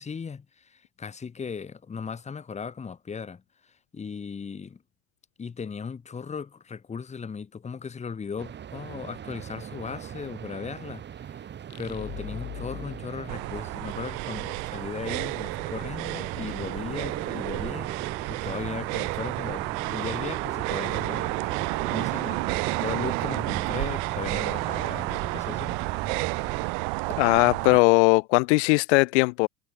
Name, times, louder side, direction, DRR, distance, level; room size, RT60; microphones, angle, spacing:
voice 1, 0.0-4.8 5.4-11.4 11.8-17.9 18.3-21.4 21.9-25.8, left 6 dB, 20° left, 2.5 m, -37 dB
sound 1, 8.4-26.7, right 9 dB, 30° right, 4.2 m, -38 dB
sound 2, 11.7-14.3, left 15 dB, 50° left, 7.8 m, -42 dB
sound 3, 13.3-27.8, right 40 dB or more, 70° right, 1.8 m, -31 dB
voice 2, 27.2-29.5, left 28 dB, 80° left, 0.5 m, -19 dB
supercardioid pair, 130°, 34 cm